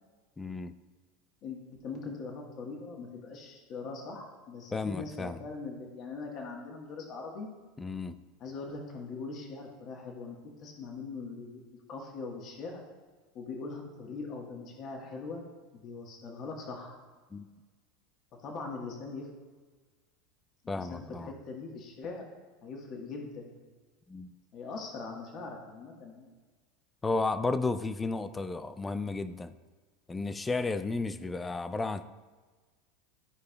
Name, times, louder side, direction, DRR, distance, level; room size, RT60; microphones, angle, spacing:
voice 1, 0.4-0.7 4.7-5.4 7.8-8.2 17.3-17.5 20.7-21.3 24.1-24.3 27.0-29.5 30.1-32.1, left 3 dB, 15° left, 12 dB, 0.4 m, -33 dB
voice 2, 1.4-7.5 8.4-11.6 11.9-12.8 13.3-15.4 15.7-17.0 18.4-19.3 20.8-22.2 22.6-23.6 24.5-26.3, left 4 dB, 45° left, 0 dB, 1.4 m, -41 dB
13.0 x 4.8 x 2.3 m, 1.4 s
supercardioid pair, 105°, 0 cm